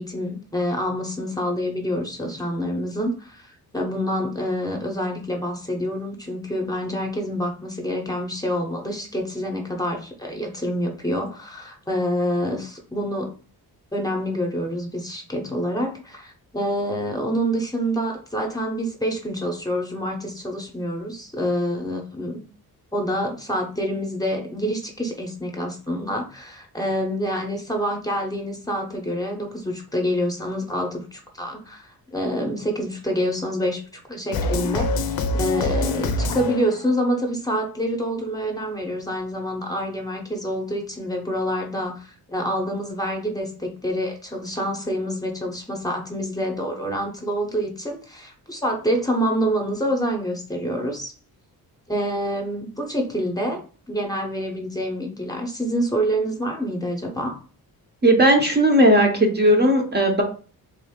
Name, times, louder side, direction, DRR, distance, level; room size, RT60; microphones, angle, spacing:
voice 1, 0.0-13.3 13.9-22.4 22.9-51.1 51.9-53.6 53.9-57.4, equal, 10° left, 1 dB, 0.7 m, -27 dB
sound 1, 34.3-37.0, left 2 dB, 75° left, 0.6 m, -25 dB
voice 2, 58.0-60.2, right 1 dB, 30° right, 1 dB, 0.6 m, -16 dB
3.5 x 2.5 x 3.5 m, 0.38 s
wide cardioid pair, 150°, 37 cm